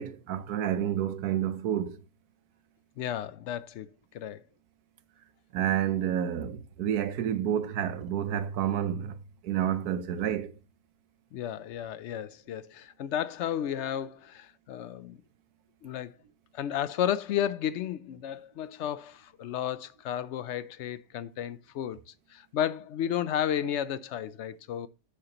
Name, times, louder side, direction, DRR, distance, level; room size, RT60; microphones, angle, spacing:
voice 1, 0.0-2.0 5.5-9.2 9.4-10.5, right 10 dB, 85° right, 1.3 m, -29 dB
voice 2, 3.0-4.4 11.3-15.2 15.8-16.1 16.5-22.0 22.3-24.9, left 10 dB, 65° left, 0.7 m, -33 dB
9.6 x 6.5 x 2.9 m
omnidirectional pair, 1.6 m